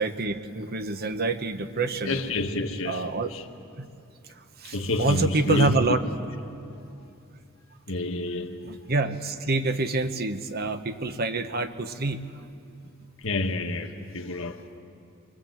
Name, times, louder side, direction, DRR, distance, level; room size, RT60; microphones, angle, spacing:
voice 1, 0.0-2.2 2.8-3.3 3.8-3.9 4.2-6.0 8.6-12.4, right 3 dB, 50° right, 1.0 m, -27 dB
voice 2, 2.0-3.5 4.6-5.8 7.9-8.6 13.2-14.8, left 2 dB, 70° left, 1.5 m, -29 dB
24.0 x 22.0 x 7.9 m
head